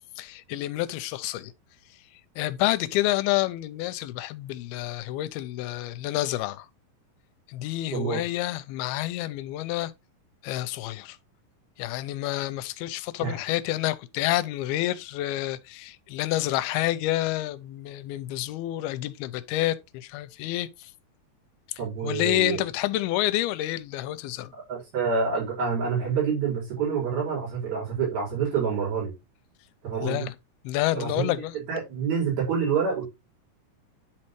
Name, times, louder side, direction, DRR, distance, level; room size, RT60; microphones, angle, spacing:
voice 1, 0.2-1.5 2.4-6.7 7.5-9.9 10.4-11.2 11.8-20.9 22.0-24.5 30.0-30.3 30.6-31.6, left 15 dB, 85° left, 2.5 m, -28 dB
voice 2, 7.9-8.2 13.2-13.4 21.8-22.6 24.7-29.1 29.8-30.3 30.9-33.1, right 6 dB, 80° right, 6.6 m, -27 dB
10.5 x 4.3 x 3.1 m
omnidirectional pair, 4.4 m